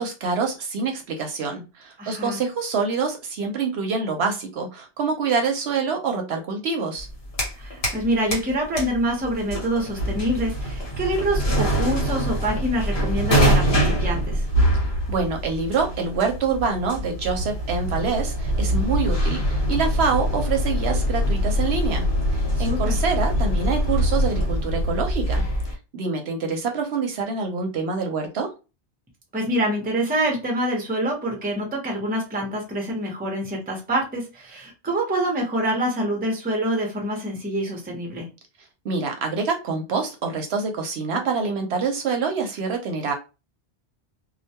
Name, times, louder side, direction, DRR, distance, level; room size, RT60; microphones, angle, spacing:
voice 1, 0.0-7.1 15.1-25.4 25.9-28.5 38.8-43.1, right 5 dB, 70° right, 4 dB, 0.8 m, -26 dB
voice 2, 2.0-2.4 7.6-14.4 22.6-23.0 29.3-38.3, right 1 dB, 10° right, 0 dB, 0.5 m, -26 dB
sound 1, 7.0-8.0 8.3-25.8, equal, 50° left, 1.0 m, -24 dB
2.2 x 2.2 x 2.7 m, 0.30 s
omnidirectional pair, 1.2 m